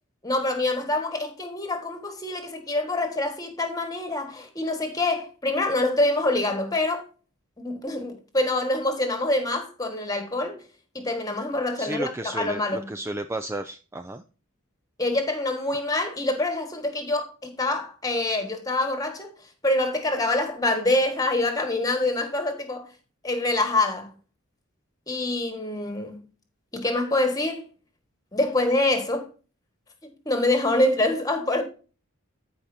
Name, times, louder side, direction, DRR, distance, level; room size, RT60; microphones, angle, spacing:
voice 1, 0.2-7.0 7.6-10.6 10.9-12.9 15.0-19.3 19.6-22.9 23.2-24.1 25.1-26.2 26.7-27.7 28.3-29.3 30.0-31.6, left 2 dB, 15° left, 1.6 m, -25 dB
voice 2, 11.8-14.2, right 1 dB, 10° right, 0.3 m, -32 dB
14.0 x 5.0 x 2.7 m
head